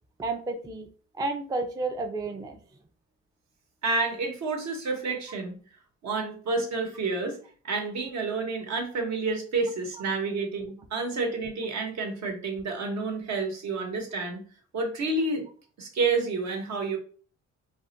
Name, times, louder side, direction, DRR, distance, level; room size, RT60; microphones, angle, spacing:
voice 1, 0.2-0.9 1.1-2.6, right 3 dB, 15° right, 5 dB, 0.3 m, -31 dB
voice 2, 3.8-5.5 6.0-7.4 7.6-14.4 14.7-15.4 15.8-17.0, right 3 dB, 65° right, 3 dB, 0.9 m, -29 dB
2.3 x 2.1 x 3.8 m, 0.42 s
cardioid pair, 90°, 30 cm